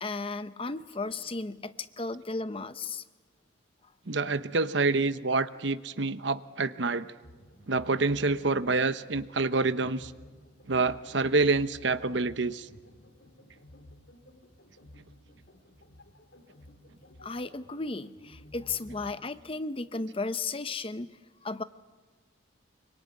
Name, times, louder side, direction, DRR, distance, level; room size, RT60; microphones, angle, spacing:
voice 1, 0.0-3.0 17.2-21.1 21.4-21.6, left 3 dB, 30° left, 12 dB, 0.8 m, -34 dB
voice 2, 4.1-7.1 7.7-10.1 10.7-12.7, right 3 dB, 70° right, 13 dB, 0.9 m, -27 dB
sound 1, 7.2-19.2, left 1 dB, 70° left, 3.6 m, -53 dB
25.0 x 24.0 x 9.6 m, 1.4 s
head